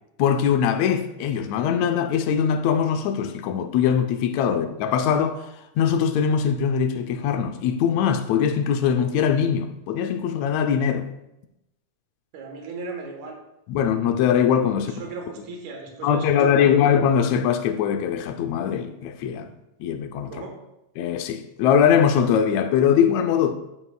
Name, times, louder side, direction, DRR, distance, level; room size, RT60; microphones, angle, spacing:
voice 1, 0.2-5.5 5.8-11.1 13.7-14.9 16.0-19.5 19.8-20.3 21.0-23.5, left 8 dB, 80° left, 1.7 m, -21 dB
voice 2, 12.3-13.4 14.8-16.9 20.3-20.6, right 4 dB, 75° right, 2.6 m, -37 dB
12.0 x 6.0 x 2.2 m
omnidirectional pair, 3.6 m